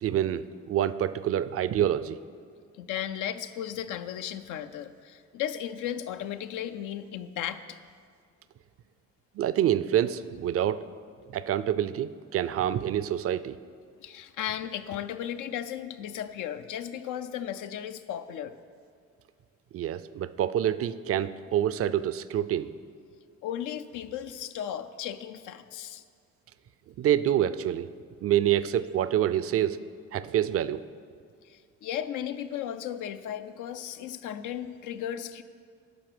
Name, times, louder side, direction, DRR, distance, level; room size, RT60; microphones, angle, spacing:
voice 1, 0.0-2.2 9.4-10.9 11.3-13.6 19.7-22.7 27.0-27.9 28.2-29.8 30.1-30.8, right 11 dB, 50° right, 16 dB, 0.4 m, -27 dB
voice 2, 2.7-7.8 14.0-18.6 23.4-26.0 31.4-35.4, left 10 dB, 85° left, 10 dB, 0.5 m, -35 dB
11.5 x 5.0 x 6.1 m, 2.1 s
cardioid pair, 90°, 30 cm